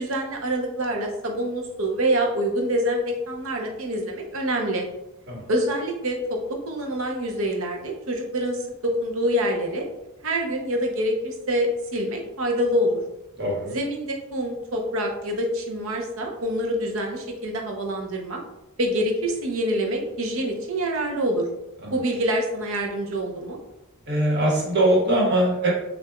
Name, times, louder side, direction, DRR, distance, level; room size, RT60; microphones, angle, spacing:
voice 1, 0.0-4.8 5.5-8.6 8.8-9.8 10.2-13.0 13.7-18.4 18.8-21.5 21.9-23.6, equal, 65° right, 1 dB, 0.7 m, -26 dB
voice 2, 13.4-13.7 21.8-22.0 24.1-25.7, right 1 dB, 50° right, -4 dB, 1.3 m, -21 dB
6.5 x 2.5 x 2.2 m, 0.94 s
head